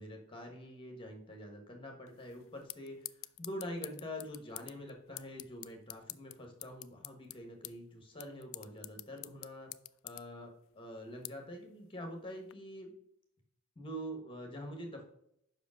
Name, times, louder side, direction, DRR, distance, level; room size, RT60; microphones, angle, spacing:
voice 1, 0.0-3.1 3.4-9.7 10.0-12.9 13.7-15.1, equal, 25° left, 2 dB, 1.4 m, -45 dB
sound 1, 2.1-12.5, left 19 dB, 65° left, 0.3 m, -50 dB
5.7 x 5.0 x 6.2 m, 0.77 s
head